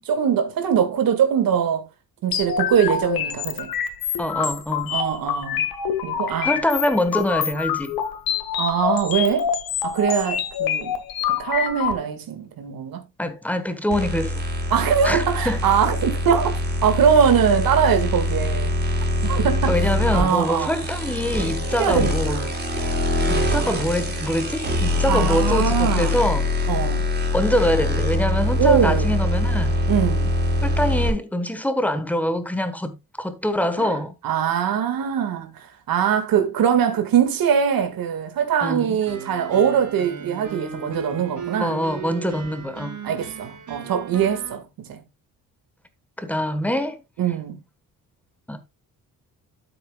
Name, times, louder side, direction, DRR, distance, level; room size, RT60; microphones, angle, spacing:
voice 1, 0.1-1.9 2.2-3.7 4.9-5.7 6.0-6.5 8.6-9.5 9.8-11.0 11.3-13.0 14.7-18.8 19.2-19.8 20.1-20.8 21.8-22.5 25.1-26.2 26.7-27.0 28.6-29.1 29.9-30.3 33.8-34.0 34.2-41.8 43.0-45.0 47.2-47.6, right 8 dB, 75° right, 1.9 m, -22 dB
sound 1, 2.3-11.9, left 8 dB, 85° left, 1.7 m, -26 dB
voice 2, 4.2-5.0 6.4-7.9 13.2-14.3 15.0-15.6 19.7-22.4 23.3-26.5 27.3-29.7 30.6-34.1 38.6-39.0 41.6-43.0 46.2-47.0 48.5-48.6, left 1 dB, 5° left, 1.2 m, -24 dB
sound 2, 13.9-31.1, left 1 dB, 30° right, 3.9 m, -23 dB
sound 3, 39.1-44.6, right 6 dB, 55° right, 3.9 m, -36 dB
13.0 x 8.0 x 2.3 m
cardioid pair, 170°, 35 cm